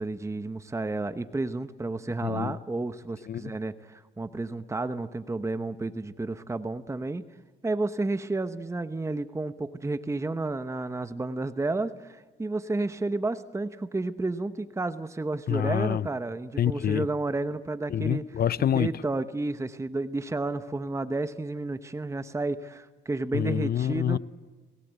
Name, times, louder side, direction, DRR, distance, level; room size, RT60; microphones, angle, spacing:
voice 1, 0.0-7.2 7.6-18.4 18.7-24.2, right 2 dB, 15° right, 1.1 m, -31 dB
voice 2, 2.2-2.5 3.3-3.5 15.5-16.1 16.6-17.1 17.9-18.9 23.3-24.2, left 10 dB, 50° left, 0.7 m, -26 dB
29.0 x 19.0 x 8.2 m
cardioid pair, 90°, 20 cm